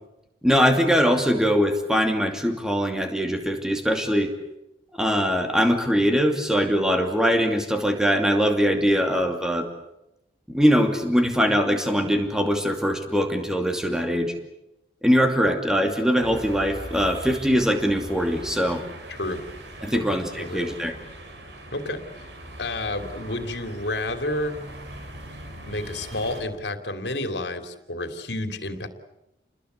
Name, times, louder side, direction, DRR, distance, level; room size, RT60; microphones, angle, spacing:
voice 1, 0.4-4.3 4.9-9.7 10.5-14.3 15.0-18.8 19.8-21.0, equal, 5° right, 4 dB, 2.6 m, -22 dB
sound 1, 16.2-26.4, right 1 dB, 85° right, 5.0 m, -40 dB
voice 2, 19.1-19.4 19.9-20.7 21.7-22.2 22.6-24.6 25.6-28.9, left 1 dB, 80° left, 8 dB, 3.0 m, -30 dB
29.5 x 21.0 x 8.2 m, 0.89 s
head